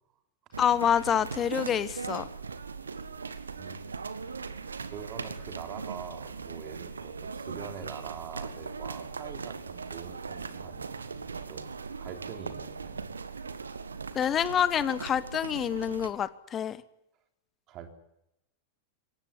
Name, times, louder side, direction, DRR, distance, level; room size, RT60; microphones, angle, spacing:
sound 1, 0.5-16.1, right 5 dB, 75° right, 1.5 m, -39 dB
voice 1, 0.6-2.3 14.1-16.8, left 9 dB, 25° left, 16 dB, 1.2 m, -27 dB
voice 2, 4.9-11.7 12.0-13.1 17.7-17.9, right 7 dB, 35° right, 5 dB, 3.8 m, -44 dB
22.5 x 18.0 x 9.8 m, 0.83 s
figure-of-eight pair, 90°, 0 cm